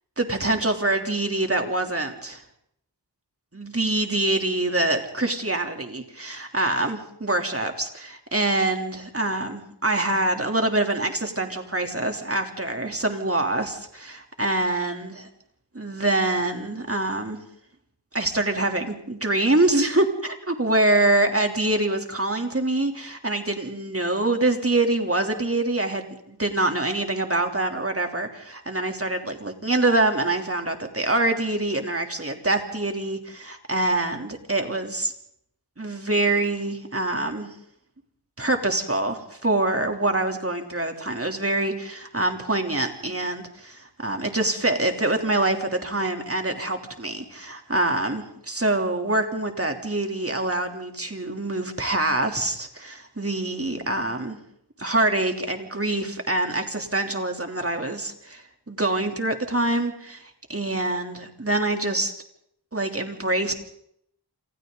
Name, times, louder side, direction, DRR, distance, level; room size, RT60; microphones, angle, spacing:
voice 1, 0.2-2.4 3.5-15.3 15.7-17.4 18.1-35.1 35.8-37.5 38.4-54.4 54.8-62.1 62.7-63.5, right 2 dB, 35° right, 4 dB, 3.3 m, -25 dB
28.0 x 28.0 x 4.0 m, 0.71 s
wide cardioid pair, 60°, 42 cm